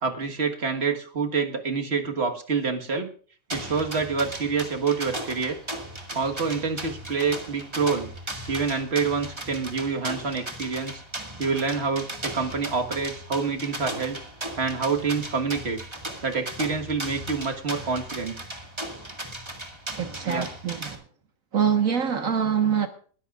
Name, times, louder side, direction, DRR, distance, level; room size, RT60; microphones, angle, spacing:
voice 1, 0.0-3.1 3.5-5.6 6.1-8.1 8.5-11.0 11.4-14.2 14.6-15.8 16.2-18.4 20.3-20.5, right 5 dB, 45° right, 1.7 m, -27 dB
sound 1, 3.5-20.9, right 1 dB, 20° right, 1.8 m, -37 dB
voice 2, 20.0-21.0 21.5-22.9, right 7 dB, 70° right, 1.8 m, -24 dB
21.0 x 14.0 x 2.4 m
omnidirectional pair, 1.5 m